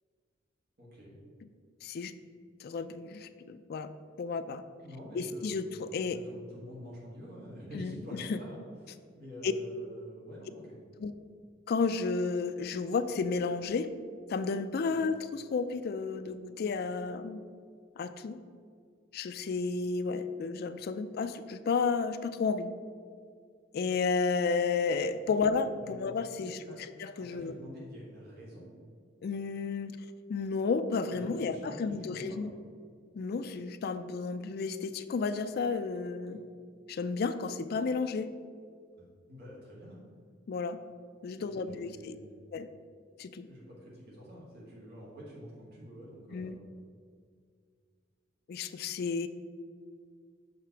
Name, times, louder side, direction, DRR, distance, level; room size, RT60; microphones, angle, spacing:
voice 1, 0.8-1.2 4.8-5.7 6.0-8.6 8.8-10.8 14.9-15.0 25.2-25.5 25.8-26.0 26.3-26.8 27.2-28.7 31.1-32.5 36.3-36.4 39.0-40.0 41.4-42.4 43.4-46.7, equal, 50° right, -5 dB, 1.6 m, -47 dB
voice 2, 1.8-2.1 2.6-3.9 4.2-4.6 5.1-6.2 7.7-8.4 9.4-9.5 11.0-11.1 11.7-13.9 14.3-17.4 18.0-18.4 19.1-22.7 23.7-26.6 27.0-27.5 29.2-30.0 30.3-32.5 33.1-36.4 36.9-38.4 40.5-40.8 41.2-42.1 42.5-42.7 43.2-43.5 46.3-46.6 48.5-49.3, left 4 dB, 50° left, 11 dB, 0.3 m, -32 dB
6.6 x 3.3 x 5.7 m, 2.1 s
head